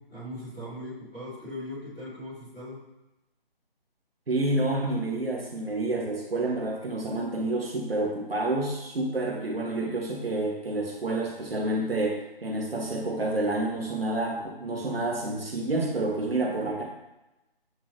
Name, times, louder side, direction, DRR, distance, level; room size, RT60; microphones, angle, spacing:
voice 1, 0.0-2.8, left 1 dB, 5° left, -19 dB, 0.6 m, -39 dB
voice 2, 4.3-16.8, right 2 dB, 70° right, -1 dB, 1.7 m, -29 dB
9.9 x 4.1 x 3.0 m, 0.97 s
figure-of-eight pair, 155°, 30 cm